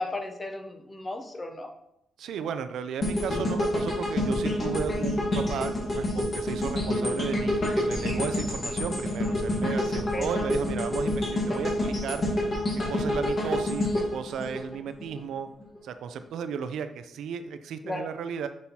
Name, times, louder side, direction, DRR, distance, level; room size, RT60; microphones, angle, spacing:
voice 1, 0.0-1.7 10.1-10.3 17.8-18.1, left 2 dB, 20° left, 4 dB, 0.7 m, -34 dB
voice 2, 2.2-12.2 12.9-15.5 15.8-18.5, right 7 dB, 85° right, 10 dB, 0.4 m, -34 dB
sound 1, 3.0-15.2 15.6-15.8, left 1 dB, 35° left, 1.5 m, -28 dB
6.2 x 5.3 x 2.8 m, 0.78 s
wide cardioid pair, 160°, 0 cm